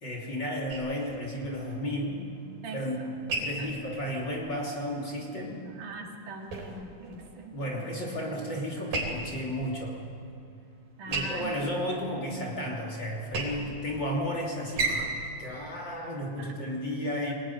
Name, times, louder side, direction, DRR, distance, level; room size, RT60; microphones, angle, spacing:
voice 1, 0.0-2.3 2.7-5.7 7.5-10.0 11.1-17.3, equal, 35° left, -1 dB, 3.3 m, -33 dB
sound 1, 0.7-16.8, right 2 dB, 85° right, 5.7 m, -38 dB
voice 2, 2.6-3.2 3.6-3.8 5.3-8.1 11.0-11.9 16.4-16.5, right 3 dB, 65° right, 1 dB, 3.8 m, -42 dB
23.0 x 20.0 x 10.0 m, 2.5 s
omnidirectional pair, 4.0 m